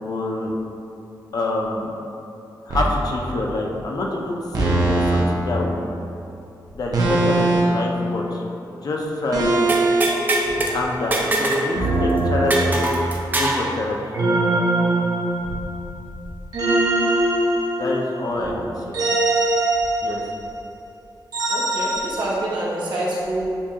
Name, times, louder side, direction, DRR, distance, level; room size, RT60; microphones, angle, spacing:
voice 1, 0.0-0.5 1.3-2.0 2.6-5.9 6.7-8.4 8.8-9.7 10.7-12.9 13.4-14.1 17.8-19.0 20.0-20.2, left 2 dB, 55° left, -1 dB, 0.6 m, -26 dB
sound 1, 2.7-3.0 4.5-5.2 6.9-7.8 9.3-10.0 11.7-13.2 14.1-15.7 16.5-18.2 18.9-20.4 21.3-22.1, right 2 dB, 55° right, 0.7 m, -21 dB
sound 2, 9.7-10.7 11.1-11.7 11.9-12.0 12.5-13.6, right 1 dB, 25° right, 0.5 m, -22 dB
voice 2, 21.5-23.6, right 1 dB, 80° right, -6 dB, 1.0 m, -27 dB
6.9 x 2.4 x 2.8 m, 2.7 s
wide cardioid pair, 130°, 8 cm